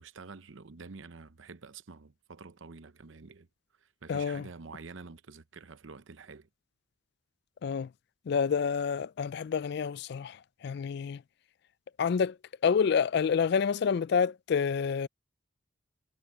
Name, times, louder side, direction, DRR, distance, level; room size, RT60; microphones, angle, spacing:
voice 1, 0.0-3.5 3.8-6.5, right 4 dB, 75° right, 0.8 m, -48 dB
voice 2, 4.1-4.4 7.6-7.9 8.3-11.2 12.0-12.4 12.6-15.1, left 6 dB, 55° left, 0.3 m, -28 dB
head